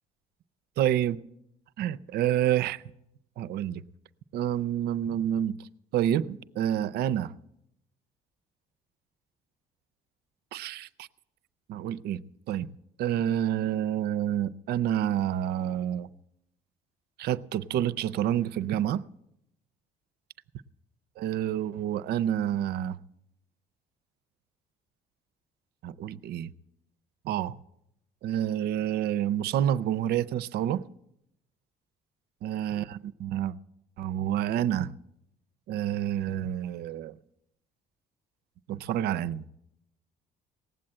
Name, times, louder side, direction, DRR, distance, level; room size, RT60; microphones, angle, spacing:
voice 1, 0.8-1.1 1.8-2.8 3.4-3.8 4.3-5.6 5.9-7.3 10.5-11.1 11.7-12.2 12.5-12.7 13.0-16.1 17.2-19.0 21.2-23.0 25.8-26.5 27.2-27.6 28.2-30.8 32.4-33.5 34.0-34.9 35.7-37.1 38.7-39.4, right 11 dB, 70° right, 16 dB, 0.6 m, -28 dB
18.5 x 7.6 x 8.8 m, 0.81 s
cardioid pair, 110°, 17 cm